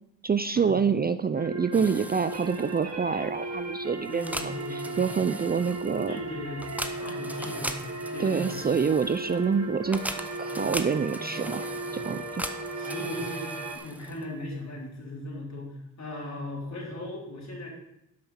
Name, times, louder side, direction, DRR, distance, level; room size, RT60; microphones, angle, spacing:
voice 1, 0.2-6.2 8.2-10.0 10.4-12.5, right 6 dB, 25° right, 12 dB, 0.4 m, -27 dB
sound 1, 1.4-13.8, right 2 dB, 50° right, 1.5 m, -36 dB
sound 2, 1.7-14.4, right 1 dB, 5° right, 0.9 m, -40 dB
voice 2, 4.1-5.0 6.1-8.6 11.9-12.1 12.8-17.7, left 1 dB, 50° left, -3 dB, 3.8 m, -38 dB
12.5 x 5.6 x 4.4 m, 0.83 s
supercardioid pair, 45°, 36 cm